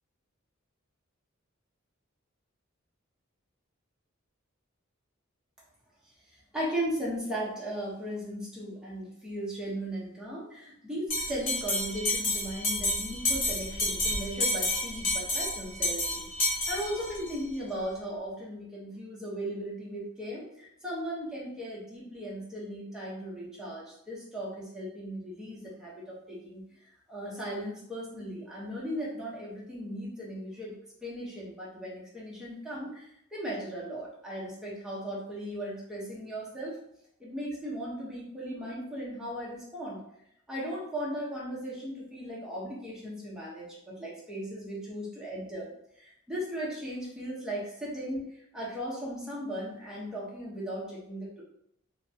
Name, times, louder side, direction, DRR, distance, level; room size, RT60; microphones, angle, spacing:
voice 1, 6.5-16.3 16.7-25.9 26.3-26.6 27.1-36.8 37.2-40.0 40.5-45.7 46.0-51.4, equal, 5° right, -6 dB, 0.9 m, -37 dB
Bell, 11.1-17.3, left 1 dB, 90° left, 1.3 m, -30 dB
3.3 x 2.2 x 2.7 m, 0.74 s
head